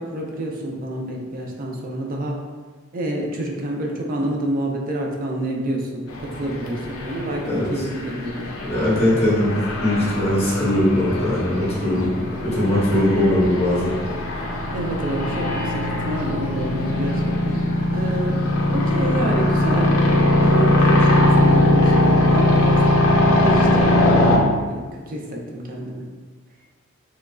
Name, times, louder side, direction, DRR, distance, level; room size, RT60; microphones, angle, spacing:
voice 1, 0.0-2.4 2.9-8.5 12.0-12.1 12.9-13.0 14.7-17.6 17.9-18.4 18.7-22.8 23.4-26.0, right 1 dB, 40° right, 0 dB, 0.4 m, -28 dB
sound 1, 6.1-24.4, left 1 dB, 80° left, 0.4 m, -20 dB
voice 2, 8.6-13.9, left 1 dB, 30° left, -8 dB, 0.9 m, -20 dB
3.0 x 2.4 x 2.2 m, 1.4 s
head